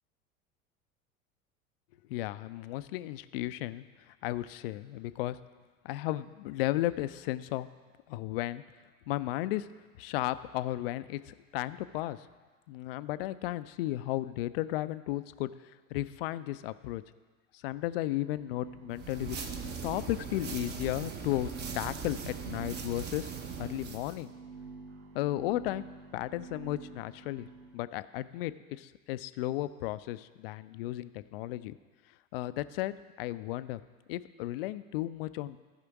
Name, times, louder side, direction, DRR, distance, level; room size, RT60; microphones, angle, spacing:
voice 1, 2.1-3.8 4.2-5.4 5.8-7.7 8.1-8.6 9.1-9.7 10.0-12.2 12.7-15.5 15.9-17.0 17.6-19.4 19.8-21.5 21.7-23.3 23.6-24.3 25.1-25.8 26.1-27.5 27.7-31.8 32.3-33.8 34.1-35.6, left 16 dB, 45° left, 15 dB, 0.4 m, -34 dB
sound 1, 18.2-27.8, right 4 dB, 55° right, 1.2 m, -48 dB
sound 2, 18.9-24.2, right 6 dB, 25° right, 0.8 m, -40 dB
14.5 x 5.0 x 4.7 m, 1.4 s
figure-of-eight pair, 75°, 42 cm